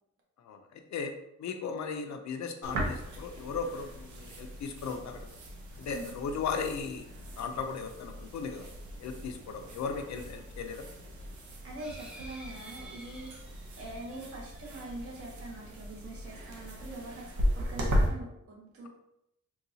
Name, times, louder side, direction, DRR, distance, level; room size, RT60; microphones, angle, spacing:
voice 1, 0.4-1.1 1.4-5.4 5.8-7.0 7.4-8.7 9.0-10.8, left 5 dB, 70° left, 6 dB, 0.5 m, -36 dB
sound 1, 2.6-18.1, equal, 85° right, 0.7 m, -37 dB
voice 2, 11.6-13.3 13.8-18.9, right 2 dB, 50° right, -2 dB, 1.0 m, -43 dB
sound 2, 11.8-16.4 17.0-17.1 17.4-17.5, right 1 dB, 5° right, 0.5 m, -53 dB
3.9 x 2.3 x 2.7 m, 0.81 s
wide cardioid pair, 125°, 29 cm